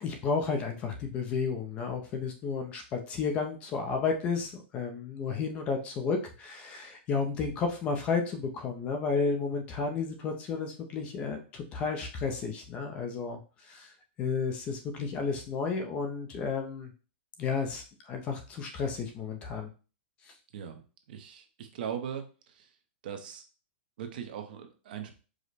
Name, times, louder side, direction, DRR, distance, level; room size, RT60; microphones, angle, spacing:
voice 1, 0.0-13.9 14.2-16.9 17.4-19.7, left 5 dB, 20° left, 4 dB, 0.4 m, -32 dB
voice 2, 21.1-22.2 22.6-22.7 23.0-23.4 24.0-25.1, right 8 dB, 50° right, 6 dB, 0.7 m, -39 dB
4.9 x 2.1 x 4.0 m, 0.35 s
supercardioid pair, 175°, 6 cm